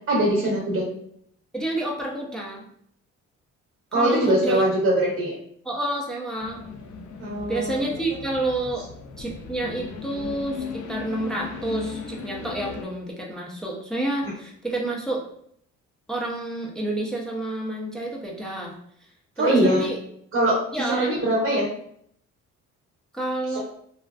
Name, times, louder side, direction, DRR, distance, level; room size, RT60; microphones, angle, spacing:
voice 1, 0.1-0.9 3.9-5.3 7.2-7.9 19.4-19.8 20.3-21.7 23.5-23.6, right 1 dB, 45° right, -4 dB, 0.8 m, -22 dB
voice 2, 1.5-2.7 3.9-4.6 5.7-6.6 7.5-8.8 9.2-15.2 16.1-18.8 19.4-20.0 20.7-21.1 23.1-23.6, right 2 dB, ahead, -2 dB, 0.5 m, -29 dB
sound 1, 6.4-12.9, left 6 dB, 70° left, 0.4 m, -37 dB
2.4 x 2.3 x 2.2 m, 0.67 s
cardioid pair, 90°, 30 cm